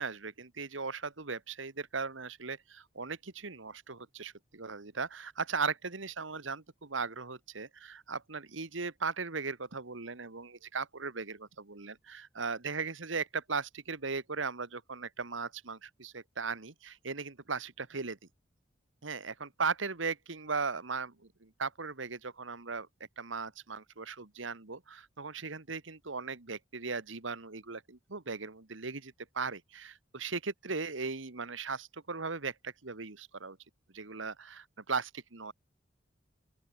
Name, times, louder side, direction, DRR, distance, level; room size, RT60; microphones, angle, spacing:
voice 1, 0.0-18.2 19.0-21.1 21.4-22.9 23.2-33.6 33.9-35.5, right 4 dB, 80° right, 1.7 m, -38 dB
open air
head